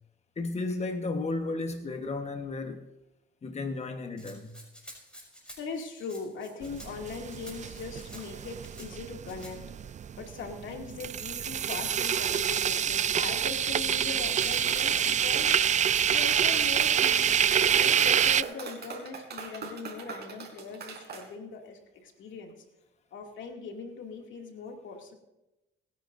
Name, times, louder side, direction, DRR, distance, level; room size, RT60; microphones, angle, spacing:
voice 1, 0.4-2.9 3.4-4.6, left 3 dB, 35° left, 1.3 m, -33 dB
Rattle (instrument), 4.2-8.9 9.2-9.5, equal, 5° left, 5.9 m, -50 dB
voice 2, 5.6-9.6 10.2-22.5 23.1-25.1, left 5 dB, 75° left, 2.6 m, -41 dB
sound 1, 6.6-18.4, right 8 dB, 40° right, 0.4 m, -27 dB
Clapping, 14.4-21.3, right 5 dB, 55° right, 3.7 m, -41 dB
28.5 x 10.5 x 2.7 m
cardioid pair, 90°, 20 cm